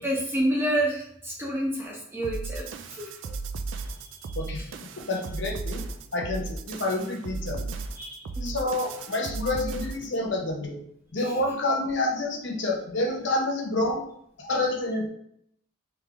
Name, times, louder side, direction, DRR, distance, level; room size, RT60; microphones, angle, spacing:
voice 1, 0.0-2.6 2.9-3.1 4.0-4.3 4.6-4.7 8.0-8.6, right 1 dB, 10° right, -4 dB, 1.0 m, -29 dB
sound 1, 2.2-10.2, right 3 dB, 70° right, 0.4 m, -35 dB
voice 2, 5.0-5.8 6.1-7.8 8.4-10.8 11.1-14.0 14.4-15.1, left 2 dB, 65° left, 0 dB, 0.9 m, -28 dB
3.5 x 3.5 x 3.4 m, 0.72 s
head